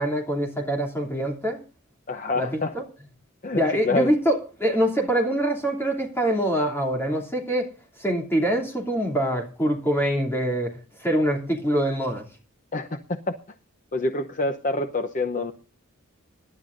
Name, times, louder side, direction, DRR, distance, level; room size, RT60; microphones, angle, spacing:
voice 1, 0.0-1.6 2.4-2.8 3.5-7.7 8.0-10.7 11.0-12.3, right 1 dB, 10° left, 2.8 m, -24 dB
voice 2, 2.1-2.7 3.4-4.1 12.7-13.0 13.3-13.4 13.9-15.5, left 2 dB, 35° left, 0.8 m, -26 dB
25.5 x 11.5 x 2.6 m
head